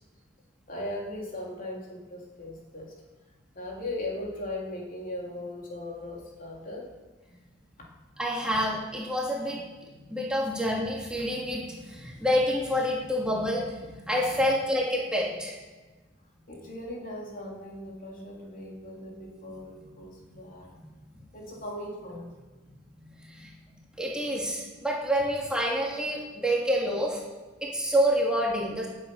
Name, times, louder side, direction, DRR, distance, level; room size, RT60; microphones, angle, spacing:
voice 1, 0.7-2.9 3.5-6.9 7.8-7.9 14.3-14.4 16.5-20.8 21.3-22.3, left 1 dB, 45° left, -2 dB, 3.5 m, -38 dB
voice 2, 8.2-15.6 20.7-20.9 23.2-27.2 27.6-28.9, equal, 5° right, -3 dB, 2.7 m, -28 dB
18.0 x 8.7 x 6.4 m, 1.3 s
head